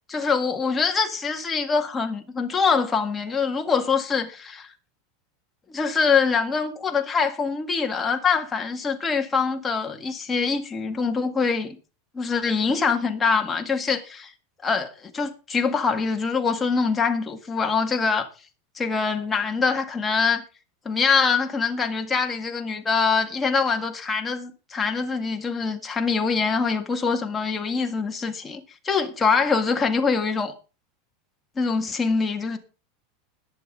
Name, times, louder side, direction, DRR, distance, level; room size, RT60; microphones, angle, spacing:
voice 1, 0.1-4.7 5.7-11.8 12.1-14.3 14.6-18.3 18.8-20.4 20.9-28.6 28.9-30.5 31.6-32.6, left 5 dB, 15° left, 1.8 m, -24 dB
21.0 x 7.1 x 3.8 m
supercardioid pair, 145°, 0 cm